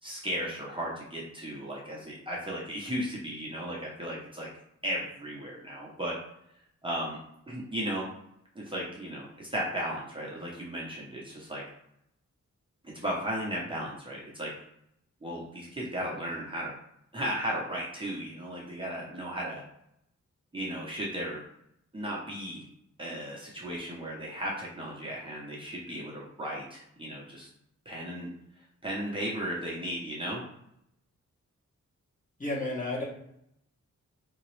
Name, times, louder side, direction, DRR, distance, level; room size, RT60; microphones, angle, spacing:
voice 1, 0.0-4.5 4.8-6.2 6.8-7.2 7.5-8.1 8.5-11.6 12.8-14.5 15.2-16.7 17.1-19.6 20.5-21.4 21.9-22.6 23.0-27.5 27.8-28.3 28.8-30.4, equal, 15° right, -5 dB, 0.8 m, -35 dB
voice 2, 32.4-33.0, left 2 dB, 25° left, -5 dB, 1.3 m, -31 dB
3.5 x 3.0 x 3.2 m, 0.75 s
wide cardioid pair, 110°, 30 cm